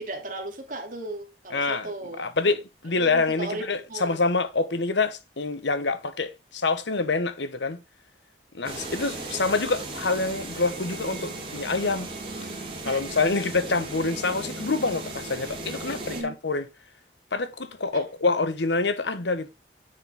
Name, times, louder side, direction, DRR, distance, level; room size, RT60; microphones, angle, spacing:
voice 1, 0.0-2.3 3.0-4.2 12.8-13.0 16.0-16.4 17.9-18.0, right 2 dB, 45° right, 2.6 m, -36 dB
voice 2, 1.5-1.9 2.2-7.8 8.5-12.1 12.8-16.7 17.3-19.5, left 3 dB, 80° left, 1.1 m, -26 dB
sound 1, 8.6-16.2, right 2 dB, 30° right, 3.6 m, -36 dB
10.0 x 6.8 x 3.5 m
head